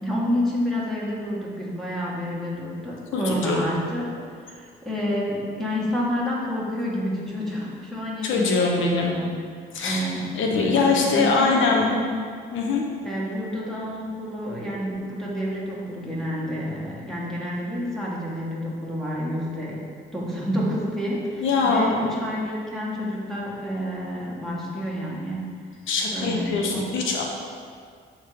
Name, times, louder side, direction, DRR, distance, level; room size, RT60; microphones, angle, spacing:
voice 1, 0.0-4.1 4.4-9.3 9.8-12.1 13.0-19.8 20.1-25.4 26.1-27.0, equal, ahead, -6 dB, 1.6 m, -29 dB
voice 2, 3.1-3.6 8.2-9.1 9.7-10.0 10.3-11.9 12.5-12.9 21.4-22.0 25.9-27.2, left 4 dB, 75° left, 0 dB, 0.9 m, -22 dB
6.4 x 3.7 x 4.8 m, 2.1 s
cardioid pair, 90°, 20 cm